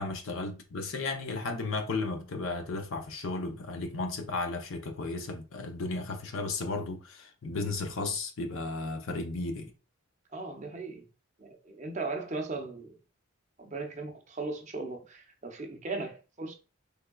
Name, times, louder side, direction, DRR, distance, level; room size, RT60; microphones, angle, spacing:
voice 1, 0.0-9.7, left 3 dB, 65° left, 0.6 m, -34 dB
voice 2, 10.3-11.0 11.4-13.0 13.6-16.6, right 3 dB, 35° right, 0.6 m, -37 dB
3.4 x 3.2 x 2.3 m
head